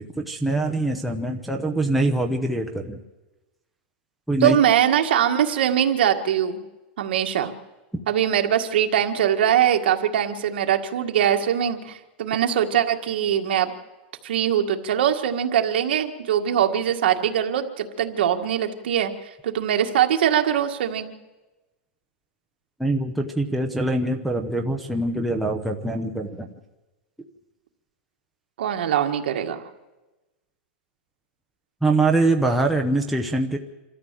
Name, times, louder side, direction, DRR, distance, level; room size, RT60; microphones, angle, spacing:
voice 1, 0.0-3.0 4.3-4.6 22.8-26.5 31.8-33.6, right 2 dB, ahead, 1 dB, 0.8 m, -23 dB
voice 2, 4.4-6.6 7.0-7.5 8.1-13.7 14.2-19.1 19.4-21.1 28.6-29.6, right 10 dB, 65° right, 4 dB, 1.8 m, -22 dB
26.5 x 13.5 x 7.7 m, 1.1 s
supercardioid pair, 175°, 6 cm